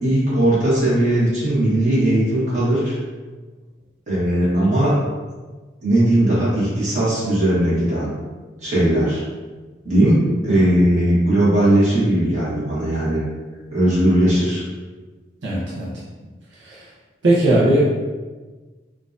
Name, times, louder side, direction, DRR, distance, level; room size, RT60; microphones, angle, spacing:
voice 1, 0.0-3.0 4.1-5.0 5.8-8.1 8.6-9.2 9.8-13.3 13.7-14.6, right 1 dB, 40° right, -9 dB, 1.3 m, -18 dB
voice 2, 15.4-15.9 16.7-16.8 17.2-17.9, right 1 dB, 80° right, -7 dB, 0.6 m, -18 dB
3.8 x 2.4 x 2.5 m, 1.3 s
head